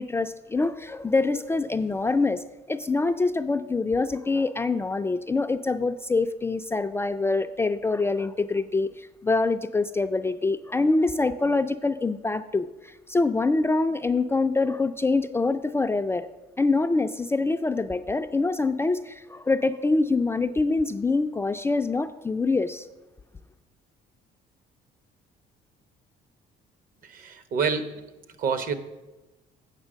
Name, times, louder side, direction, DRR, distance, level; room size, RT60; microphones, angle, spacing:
voice 1, 0.0-2.4 2.7-8.9 9.2-12.7 13.1-16.3 16.6-22.9, left 3 dB, 15° left, 8 dB, 0.3 m, -25 dB
voice 2, 27.0-28.0 28.4-28.7, right 5 dB, 55° right, 11 dB, 0.9 m, -27 dB
8.2 x 6.1 x 6.3 m, 1.1 s
cardioid pair, 110°, 17 cm